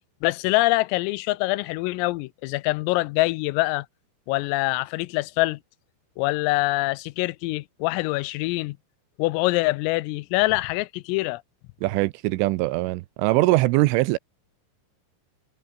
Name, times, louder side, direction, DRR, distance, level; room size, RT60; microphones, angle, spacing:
voice 1, 0.2-3.9 4.3-5.6 6.2-8.8 9.2-11.4, left 21 dB, 85° left, 3.4 m, -24 dB
voice 2, 11.8-14.2, right 20 dB, 80° right, 3.0 m, -22 dB
omnidirectional pair, 5.9 m